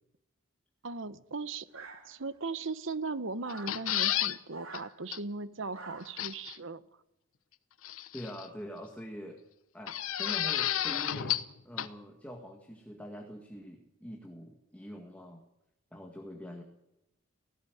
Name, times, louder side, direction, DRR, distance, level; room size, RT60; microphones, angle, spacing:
voice 1, 0.8-6.8, right 3 dB, 65° right, 14 dB, 1.0 m, -38 dB
sound 1, 1.7-2.5 3.4-3.8 4.5-4.9 5.7-6.2, right 3 dB, 85° right, 3.2 m, -47 dB
sound 2, 3.5-4.4 4.7-4.8 5.1-5.2 6.2-6.6 7.8-8.5 9.9-11.5 11.8-11.9, left 11 dB, 85° left, 0.9 m, -31 dB
voice 2, 8.1-9.4 9.7-15.4 15.9-16.6, equal, 5° left, 2 dB, 1.9 m, -44 dB
17.5 x 17.0 x 9.3 m, 0.86 s
head